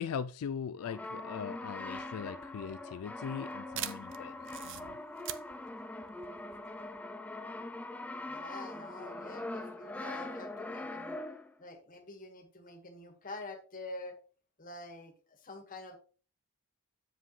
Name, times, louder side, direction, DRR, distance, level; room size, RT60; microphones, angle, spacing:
voice 1, 0.0-4.3 4.6-5.0, left 7 dB, 80° left, 0.4 m, -40 dB
Brass instrument, 0.8-11.6, left 2 dB, 5° left, 0.4 m, -42 dB
sound 1, 1.8-7.0, right 12 dB, 60° right, 0.6 m, -44 dB
voice 2, 8.2-11.2 11.6-14.2 14.6-16.0, left 2 dB, 40° left, 1.7 m, -47 dB
7.6 x 7.4 x 3.2 m
head